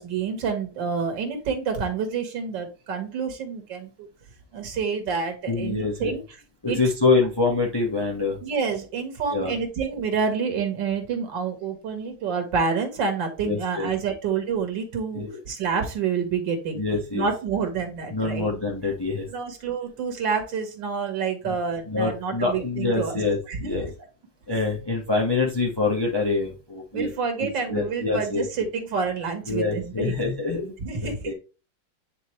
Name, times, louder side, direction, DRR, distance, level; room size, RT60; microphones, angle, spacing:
voice 1, 0.0-4.1 4.5-6.2 6.7-6.8 8.4-16.8 17.1-18.5 19.3-23.2 23.5-23.9 26.9-30.1 30.8-31.3, right 5 dB, 90° right, 5 dB, 2.1 m, -28 dB
voice 2, 5.5-6.1 6.6-8.4 9.3-9.6 13.4-13.9 15.1-15.4 16.8-17.3 18.1-19.3 21.9-23.9 24.5-27.1 27.4-28.4 29.5-30.7 31.0-31.3, left 3 dB, 15° left, -2 dB, 1.2 m, -25 dB
9.2 x 3.9 x 3.1 m, 0.32 s
omnidirectional pair, 2.0 m